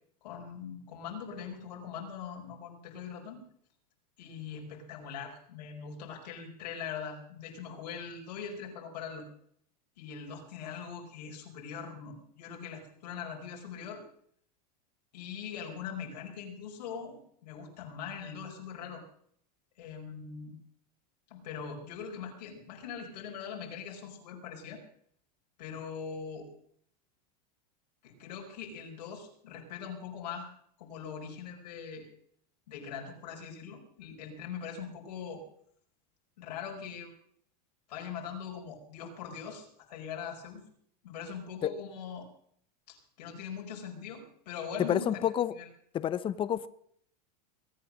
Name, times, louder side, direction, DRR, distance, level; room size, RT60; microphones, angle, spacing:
voice 1, 0.2-3.4 4.2-9.2 10.0-14.0 15.1-19.0 19.8-20.6 21.3-24.8 25.6-26.5 28.0-30.5 30.8-32.1 32.7-35.4 36.4-37.1 37.9-40.6 41.0-42.3 42.9-45.2, left 6 dB, 85° left, 0 dB, 5.0 m, -41 dB
voice 2, 44.8-45.5 45.9-46.7, left 10 dB, 25° left, 16 dB, 0.8 m, -29 dB
22.0 x 8.8 x 6.4 m, 0.66 s
supercardioid pair, 130°, 21 cm